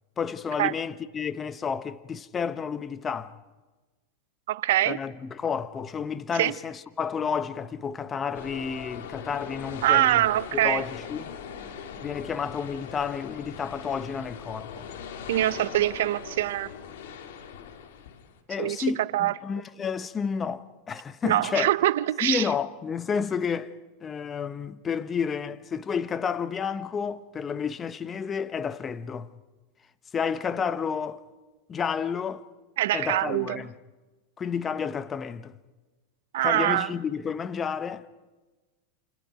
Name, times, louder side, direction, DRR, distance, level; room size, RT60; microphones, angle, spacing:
voice 1, 0.2-3.3 4.8-10.2 10.5-11.3 12.0-14.9 18.5-21.7 22.2-23.7 24.0-29.3 30.1-31.2 31.7-32.4 32.9-33.7 34.4-35.5 36.4-38.1, left 6 dB, 25° left, 1.0 m, -31 dB
voice 2, 4.5-5.0 6.4-6.5 9.8-10.8 15.3-16.7 18.6-18.8 19.1-19.3 21.2-22.5 32.8-33.6 36.3-36.9, right 14 dB, 75° right, 0.7 m, -24 dB
sound 1, 8.3-18.4, left 7 dB, 75° left, 2.5 m, -41 dB
28.5 x 28.5 x 5.1 m
hypercardioid pair, 115°, 0 cm